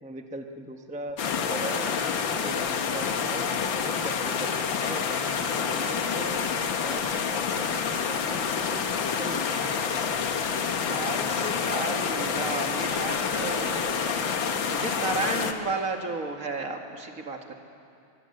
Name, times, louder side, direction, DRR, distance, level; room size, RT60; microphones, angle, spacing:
voice 1, 0.0-1.9 2.3-3.5 3.8-4.5 4.8-5.3 5.7-6.5 6.8-7.8 8.0-8.4 8.7-8.8 9.2-9.8, right 1 dB, 10° right, 4 dB, 0.3 m, -39 dB
sound 1, 1.2-15.5, left 6 dB, 65° left, 1.9 m, -28 dB
voice 2, 10.9-14.0 14.7-17.5, right 3 dB, 40° right, 3 dB, 2.1 m, -32 dB
23.5 x 21.0 x 7.8 m, 2.5 s
omnidirectional pair, 2.4 m